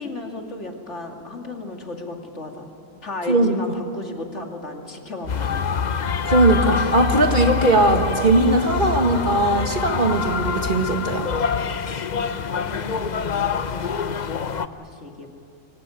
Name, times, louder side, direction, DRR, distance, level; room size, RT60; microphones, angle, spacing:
voice 1, 0.0-2.7 3.0-6.0 12.1-15.3, left 2 dB, 60° left, 2 dB, 2.8 m, -35 dB
voice 2, 3.3-3.6 6.2-11.3, right 2 dB, 40° right, 4 dB, 2.0 m, -19 dB
sound 1, 5.2-14.7, left 6 dB, 40° left, 0.7 m, -25 dB
26.0 x 23.0 x 9.3 m, 2.6 s
omnidirectional pair, 1.4 m